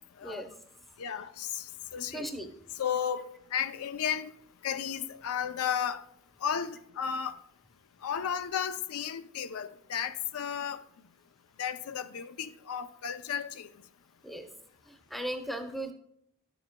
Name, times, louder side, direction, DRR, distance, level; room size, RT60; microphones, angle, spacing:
voice 1, 1.0-2.3 2.8-3.3 3.5-4.3 4.6-6.0 6.4-7.4 8.0-10.8 11.6-13.7, left 8 dB, 85° left, 0.5 m, -33 dB
voice 2, 2.1-2.5 14.2-14.5 14.9-15.9, right 1 dB, ahead, 0.7 m, -37 dB
11.5 x 7.1 x 2.2 m
head